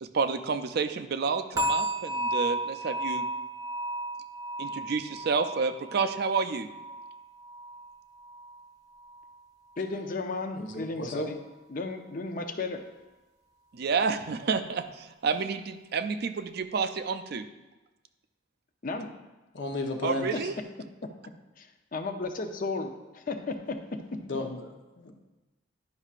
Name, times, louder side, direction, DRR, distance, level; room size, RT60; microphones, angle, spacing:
voice 1, 0.0-3.3 4.6-6.7 13.7-17.5 20.0-20.5, right 5 dB, 55° right, 9 dB, 0.4 m, -29 dB
sound 1, 1.6-8.6 8.9-9.3 9.8-9.9, right 1 dB, 20° right, 0.8 m, -34 dB
voice 2, 9.8-11.4 11.7-12.9 18.8-19.1 20.3-20.4 21.6-24.2, left 3 dB, 45° left, 6 dB, 0.6 m, -34 dB
voice 3, 10.6-11.3 19.5-20.3 24.3-24.6 25.0-25.1, left 1 dB, 70° left, 3 dB, 0.9 m, -33 dB
10.5 x 5.5 x 2.4 m, 1.1 s
head